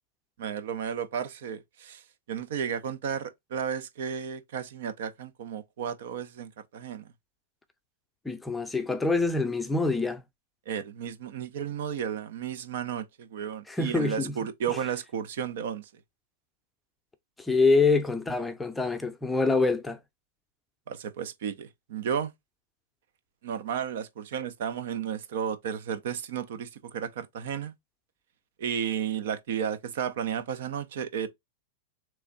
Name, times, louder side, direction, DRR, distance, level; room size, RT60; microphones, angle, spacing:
voice 1, 0.4-2.0 2.3-7.1 10.7-15.9 20.9-22.3 23.4-27.7 28.6-31.3, right 8 dB, 70° right, 0.7 m, -33 dB
voice 2, 8.2-10.2 13.7-14.4 14.7-14.8 17.4-20.0, left 3 dB, 10° left, 0.6 m, -25 dB
3.5 x 3.2 x 4.0 m
hypercardioid pair, 120°, 0 cm